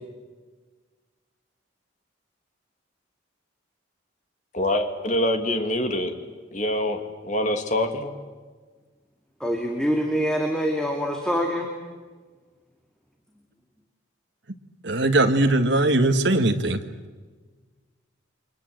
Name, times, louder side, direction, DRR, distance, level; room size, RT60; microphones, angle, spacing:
voice 1, 4.5-6.1 6.5-8.1, left 1 dB, 40° left, 6 dB, 2.6 m, -25 dB
voice 2, 9.4-11.7, equal, 5° left, 1 dB, 2.4 m, -25 dB
voice 3, 14.8-16.8, right 2 dB, 60° right, 7 dB, 1.8 m, -20 dB
30.0 x 24.5 x 7.9 m, 1.4 s
head